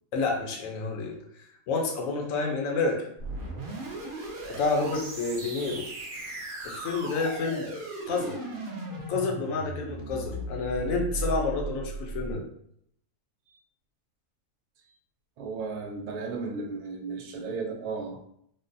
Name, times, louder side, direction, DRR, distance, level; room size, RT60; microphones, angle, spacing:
voice 1, 0.1-1.2 1.7-3.1 4.6-5.8 6.6-7.7 8.1-8.4 9.1-12.4, left 3 dB, 70° left, 1 dB, 1.0 m, -29 dB
sound 1, 3.2-12.3, right 2 dB, 55° right, 0.6 m, -37 dB
voice 2, 15.4-18.3, right 4 dB, 90° right, 4 dB, 1.1 m, -34 dB
3.7 x 2.0 x 2.6 m, 0.69 s
omnidirectional pair, 1.6 m